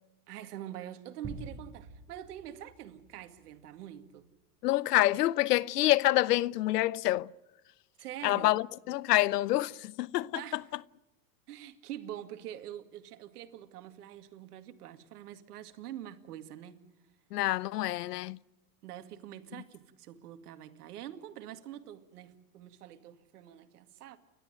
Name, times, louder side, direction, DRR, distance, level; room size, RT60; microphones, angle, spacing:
voice 1, 0.3-4.3 8.0-8.5 10.3-10.7 11.5-16.8 18.8-24.2, right 11 dB, 75° right, 2.3 m, -45 dB
sound 1, 1.2-3.8, right 3 dB, 20° right, 4.7 m, -47 dB
voice 2, 4.6-7.3 8.2-10.4 17.3-18.4, left 16 dB, 85° left, 0.7 m, -27 dB
30.0 x 13.0 x 9.2 m
hypercardioid pair, 120°, 46 cm